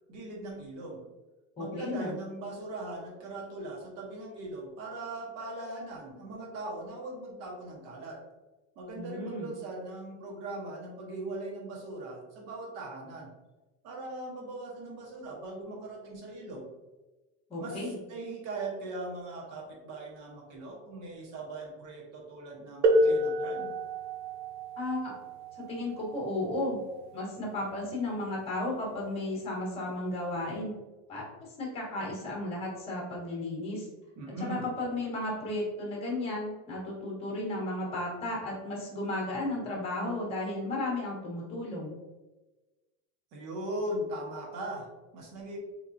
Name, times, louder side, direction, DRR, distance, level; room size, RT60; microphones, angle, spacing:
voice 1, 0.1-1.0 1.6-8.2 8.8-13.3 13.8-16.7 17.6-23.7 34.2-34.7 43.3-45.6, right 2 dB, 45° right, -1 dB, 1.1 m, -39 dB
voice 2, 1.6-2.1 8.9-9.5 17.5-18.0 24.8-25.1 25.7-26.8 27.1-30.7 31.1-33.9 34.4-42.0, left 2 dB, 15° left, -3 dB, 1.0 m, -34 dB
sound 1, 22.8-28.3 29.3-29.4 30.2-30.5, right 1 dB, 80° right, 0.8 m, -30 dB
3.5 x 3.0 x 2.6 m, 1.1 s
supercardioid pair, 160°, 36 cm